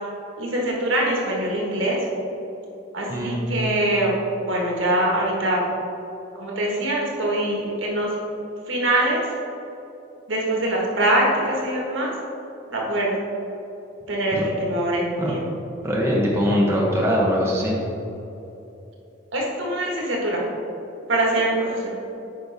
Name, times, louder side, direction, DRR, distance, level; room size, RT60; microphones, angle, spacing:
voice 1, 0.4-2.0 2.9-5.7 6.3-8.1 8.7-9.2 10.3-12.1 12.7-13.1 14.1-15.5 19.3-20.4 21.1-21.9, right 1 dB, 85° right, -2 dB, 1.6 m, -23 dB
voice 2, 3.1-3.5 14.4-14.5 15.2-15.3 15.8-17.8, equal, 15° right, -4 dB, 1.1 m, -21 dB
8.7 x 5.4 x 3.5 m, 2.9 s
head